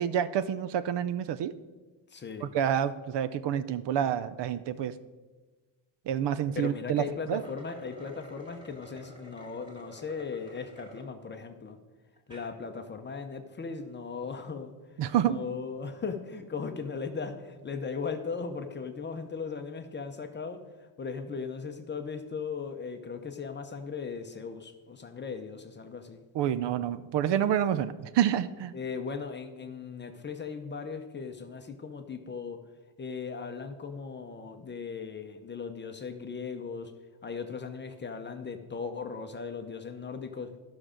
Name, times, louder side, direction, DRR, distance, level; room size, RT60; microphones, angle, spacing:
voice 1, 0.0-1.5 2.4-4.9 6.1-7.0 7.3-7.4 15.0-15.4 26.3-28.7, right 10 dB, 60° right, 14 dB, 0.6 m, -28 dB
voice 2, 2.1-2.5 6.5-11.8 12.3-14.7 15.2-20.6 21.0-26.2 28.7-32.6 33.0-36.9 37.2-40.5, left 5 dB, 25° left, 6 dB, 0.6 m, -38 dB
sound 1, 7.1-11.1 11.6-11.7 12.2-12.5, equal, 10° right, 1.9 m, -50 dB
12.0 x 6.2 x 5.0 m, 1.3 s
cardioid pair, 150°, 48 cm